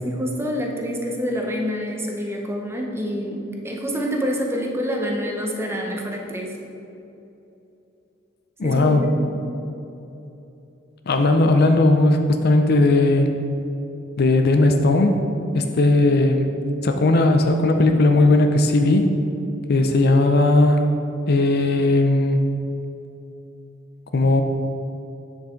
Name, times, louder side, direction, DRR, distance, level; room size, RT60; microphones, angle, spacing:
voice 1, 0.0-6.6 8.6-9.3, equal, 10° right, 0 dB, 0.8 m, -27 dB
voice 2, 8.6-9.1 11.1-13.3 14.2-15.2 15.5-16.5 16.8-19.1 19.7-20.9 21.3-22.4 24.1-24.4, left 2 dB, 50° left, 5 dB, 0.5 m, -17 dB
8.1 x 7.2 x 3.8 m, 2.9 s
head